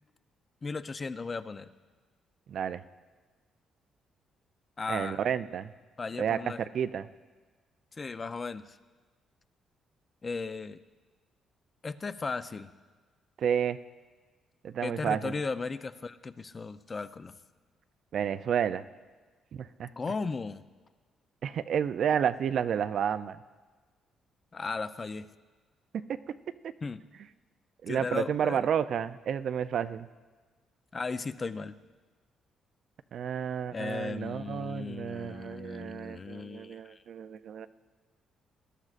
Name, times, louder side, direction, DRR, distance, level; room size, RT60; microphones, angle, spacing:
voice 1, 0.6-1.7 4.8-5.2 6.0-6.6 8.0-8.8 10.2-10.8 11.8-12.7 14.8-17.3 20.0-20.6 24.5-25.3 26.8-27.0 27.9-28.7 30.9-31.7 33.7-37.0, left 4 dB, 35° left, 12 dB, 0.5 m, -36 dB
voice 2, 2.5-2.8 4.9-5.7 6.2-6.4 6.7-7.1 13.4-13.8 14.6-15.3 18.1-18.8 19.5-19.9 21.4-23.4 27.8-30.1 33.1-37.7, right 8 dB, 65° right, 13 dB, 0.4 m, -31 dB
19.0 x 12.0 x 2.5 m, 1.4 s
cardioid pair, 90°, 0 cm